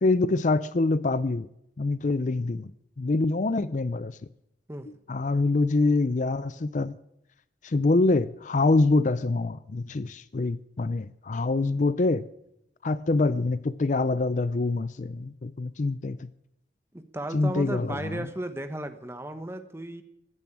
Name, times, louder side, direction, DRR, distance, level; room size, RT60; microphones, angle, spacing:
voice 1, 0.0-1.5 1.8-2.7 3.0-4.2 5.1-7.0 7.6-12.3 12.8-16.3 17.3-18.3, left 3 dB, 45° left, 0.5 m, -25 dB
voice 2, 16.9-20.0, right 1 dB, 15° right, 1.1 m, -35 dB
15.0 x 10.5 x 8.7 m
head